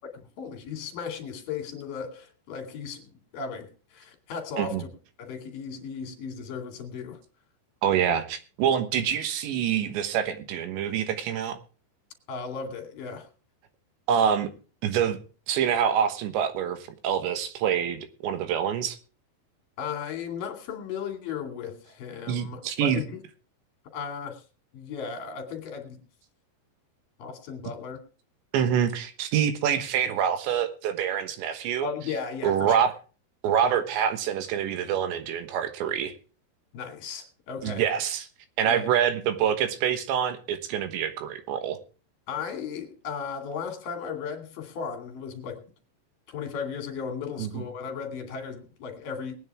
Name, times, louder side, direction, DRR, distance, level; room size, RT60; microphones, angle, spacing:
voice 1, 0.1-4.9 5.2-7.2 12.3-13.3 19.8-23.2 23.9-24.4 24.7-26.0 27.2-28.0 31.8-32.8 33.6-33.8 36.7-37.9 38.7-38.9 42.3-45.6 46.3-49.3, left 6 dB, 55° left, 3.6 m, -36 dB
voice 2, 7.8-11.6 14.1-14.5 14.8-15.2 15.5-19.0 22.3-23.0 28.5-31.9 32.4-32.9 33.4-36.1 37.6-38.3 38.6-41.8 47.4-47.6, right 8 dB, 80° right, 3.5 m, -26 dB
21.5 x 9.4 x 3.5 m
omnidirectional pair, 5.1 m